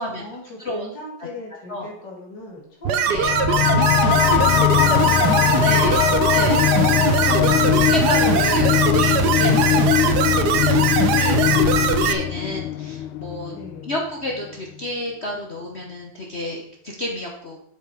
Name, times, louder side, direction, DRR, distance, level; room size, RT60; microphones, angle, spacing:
voice 1, 0.2-7.2 11.4-12.6 13.5-14.0, left 2 dB, 60° left, -3 dB, 3.2 m, -39 dB
sound 1, 2.8-12.1, right 7 dB, 60° right, 1.2 m, -21 dB
sound 2, 3.1-14.0, left 12 dB, 85° left, 1.4 m, -20 dB
voice 2, 5.6-6.6 7.2-11.6 11.9-13.5 13.9-16.6 16.8-17.6, left 1 dB, 40° left, -1 dB, 1.1 m, -30 dB
7.9 x 7.7 x 4.9 m, 0.71 s
omnidirectional pair, 2.2 m